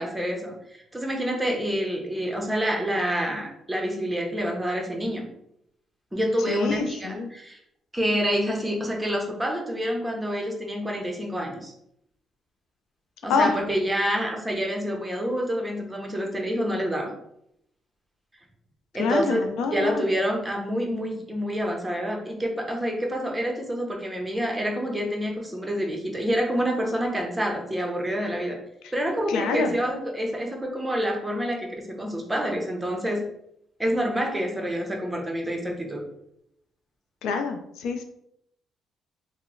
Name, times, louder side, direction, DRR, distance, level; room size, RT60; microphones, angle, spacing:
voice 1, 0.0-5.3 6.1-7.6 7.9-11.7 13.2-17.1 18.9-19.4 19.7-28.6 28.9-33.3 33.8-36.0, equal, 10° right, 0 dB, 0.7 m, -27 dB
voice 2, 6.5-7.3 13.3-13.5 19.0-20.0 28.8-28.9 29.3-29.7 37.2-38.0, left 4 dB, 85° left, 5 dB, 0.4 m, -26 dB
2.9 x 2.0 x 3.7 m, 0.77 s
cardioid pair, 90°, 0 cm